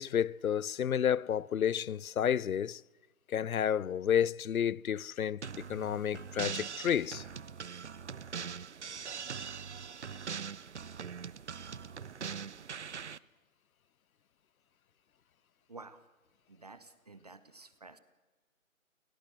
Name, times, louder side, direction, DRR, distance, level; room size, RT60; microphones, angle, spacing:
voice 1, 0.0-2.8 3.3-5.4 5.7-7.2, left 9 dB, 90° left, 0.6 m, -30 dB
sound 1, 5.4-13.2, right 6 dB, 55° right, 0.7 m, -42 dB
voice 2, 15.7-16.0 16.5-18.0, right 3 dB, 30° right, 0.9 m, -51 dB
26.0 x 17.5 x 7.7 m
figure-of-eight pair, 165°, 41 cm